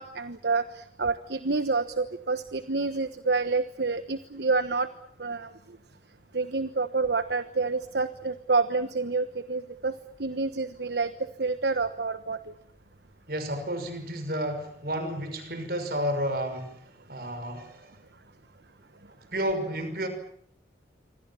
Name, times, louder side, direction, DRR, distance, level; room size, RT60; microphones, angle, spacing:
voice 1, 0.0-4.9 5.2-5.5 6.3-9.9 10.2-12.5, right 4 dB, 70° right, 11 dB, 1.2 m, -28 dB
voice 2, 13.3-17.9 19.3-20.1, equal, 55° right, 8 dB, 5.8 m, -31 dB
27.5 x 25.0 x 7.1 m, 0.68 s
head